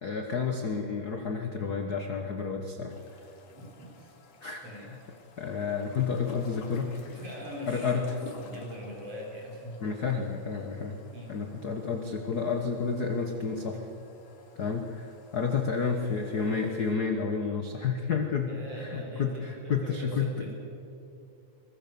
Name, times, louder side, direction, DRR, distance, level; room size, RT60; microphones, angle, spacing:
voice 1, 0.0-3.0 4.4-5.0 5.4-6.9 7.7-8.1 9.8-11.0 11.3-13.9 14.6-20.5, left 5 dB, 55° left, 4 dB, 1.0 m, -30 dB
sound 1, 2.9-16.9, left 4 dB, 70° left, 3.5 m, -53 dB
voice 2, 3.5-4.1 4.6-4.9 7.1-9.8 11.1-11.3 16.0-16.2 18.5-20.5, equal, 50° right, -2 dB, 6.2 m, -42 dB
23.5 x 20.5 x 7.0 m, 2.8 s
omnidirectional pair, 3.6 m